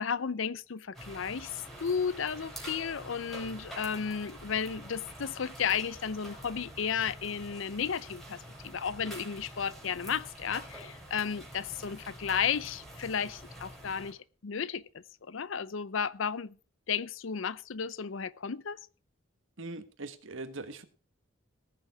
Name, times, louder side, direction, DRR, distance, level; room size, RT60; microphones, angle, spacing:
voice 1, 0.0-14.2 14.4-16.6 16.9-18.8, left 7 dB, 65° left, 0.6 m, -33 dB
sound 1, 0.9-14.1, right 1 dB, ahead, 5.3 m, -47 dB
voice 2, 19.6-20.8, right 2 dB, 70° right, 1.4 m, -41 dB
18.5 x 7.0 x 4.7 m
head